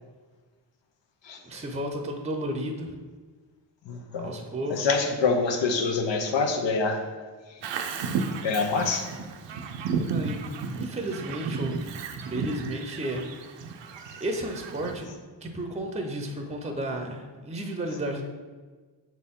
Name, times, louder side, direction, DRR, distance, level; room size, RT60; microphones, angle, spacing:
voice 1, 1.4-3.0 4.2-4.9 10.1-10.4 10.8-11.9 12.2-13.2 14.2-18.2, right 1 dB, 15° right, 4 dB, 0.6 m, -33 dB
voice 2, 3.8-4.3 4.7-7.0 8.4-9.1, left 4 dB, 85° left, 4 dB, 0.8 m, -25 dB
Bird vocalization bird call bird song, 7.6-15.0, right 5 dB, 80° right, 0.6 m, -33 dB
6.1 x 4.4 x 3.6 m, 1.4 s
wide cardioid pair, 105°, 44 cm